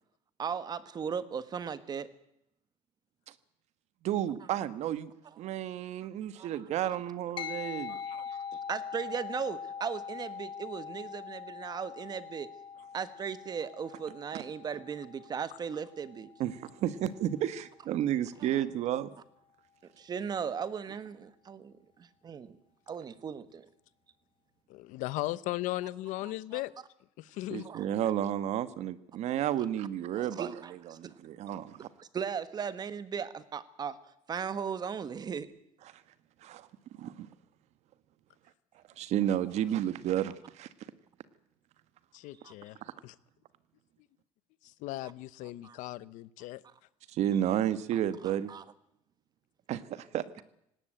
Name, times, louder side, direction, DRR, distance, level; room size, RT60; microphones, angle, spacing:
voice 1, 0.4-2.1 6.4-6.5 7.9-8.4 8.7-12.5 12.9-16.3 18.5-18.6 20.0-22.6 22.9-23.7 26.5-26.6 27.6-28.1 30.1-31.1 32.1-34.0 34.3-35.5 42.4-42.5 45.6-45.8 48.2-48.6, right 7 dB, 30° right, 14 dB, 1.5 m, -37 dB
voice 2, 4.0-5.1 5.4-8.0 16.4-19.1 27.5-30.5 31.0-31.9 36.4-36.7 37.0-37.3 39.0-40.7 42.8-42.9 47.1-48.5 49.7-50.4, right 11 dB, 60° right, 14 dB, 1.3 m, -32 dB
sound 1, 7.4-17.1, left 7 dB, 40° left, 1.6 m, -43 dB
voice 3, 24.7-26.7 27.2-27.7 42.1-42.8 43.0-43.1 44.6-46.6, left 17 dB, 75° left, 18 dB, 0.9 m, -37 dB
18.0 x 18.0 x 9.1 m, 0.77 s
cardioid pair, 140°, 13 cm